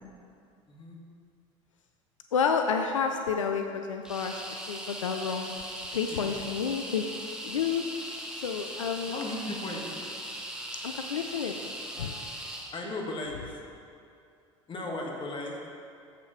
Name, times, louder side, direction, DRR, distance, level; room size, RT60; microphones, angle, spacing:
voice 1, 0.7-1.0 6.1-6.3 9.1-9.9 12.7-13.6 14.7-15.6, left 2 dB, 30° left, -1 dB, 1.6 m, -36 dB
voice 2, 2.3-4.4 4.7-5.5 5.9-7.0 7.4-7.8 8.4-9.2 10.8-11.6 12.0-12.2, left 6 dB, 90° left, 5 dB, 0.4 m, -30 dB
sound 1, 4.0-12.7, right 1 dB, 5° right, 1.1 m, -39 dB
8.0 x 5.7 x 5.0 m, 2.5 s
hypercardioid pair, 70°, 16 cm